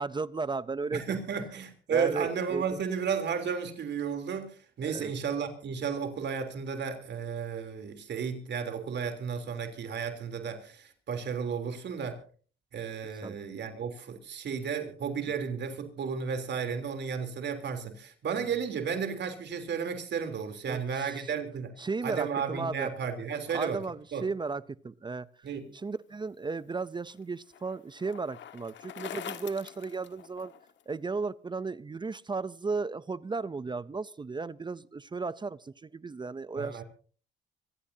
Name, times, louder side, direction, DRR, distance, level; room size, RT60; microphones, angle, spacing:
voice 1, 0.0-1.2 1.9-2.8 4.8-5.1 13.2-13.4 20.7-21.3 21.8-23.0 23.5-25.5 25.7-30.5 30.9-36.8, right 4 dB, 20° right, 0.6 m, -35 dB
voice 2, 0.9-12.2 12.7-21.7 22.0-23.8 24.1-24.3 25.4-25.7 36.6-36.8, right 6 dB, 60° right, 3.4 m, -33 dB
Bicycle, 26.4-30.8, left 9 dB, 65° left, 1.5 m, -45 dB
25.0 x 16.0 x 2.8 m
cardioid pair, 90°, 20 cm